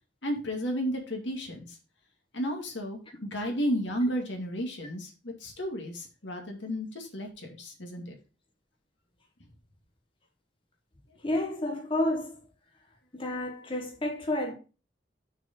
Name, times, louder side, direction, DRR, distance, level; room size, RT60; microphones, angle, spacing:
voice 1, 0.2-1.7 2.3-5.1 5.4-8.0, equal, 75° left, 2.1 m, -32 dB
voice 2, 11.2-12.4 13.1-14.5, left 1 dB, 30° left, 1.1 m, -30 dB
6.4 x 5.1 x 5.2 m
head